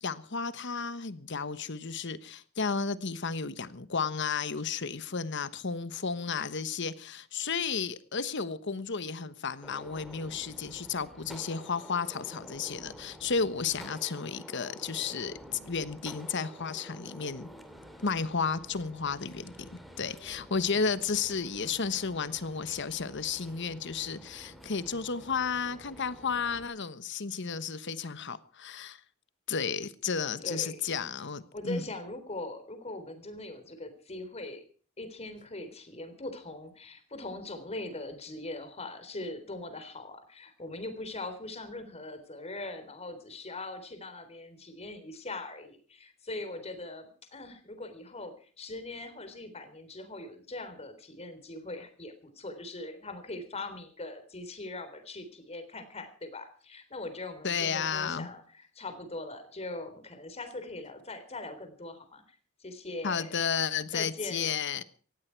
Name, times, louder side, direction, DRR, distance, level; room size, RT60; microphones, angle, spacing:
voice 1, 0.0-17.5 18.0-19.7 20.0-29.0 29.5-31.8 57.4-58.3 63.0-64.8, left 5 dB, 60° left, 1.2 m, -33 dB
Gunshot gunfire, 9.6-26.6, equal, ahead, 2.4 m, -50 dB
voice 2, 30.4-30.8 31.5-34.6 35.0-63.4 63.9-64.6, left 2 dB, 30° left, 3.7 m, -41 dB
18.5 x 15.5 x 4.6 m
head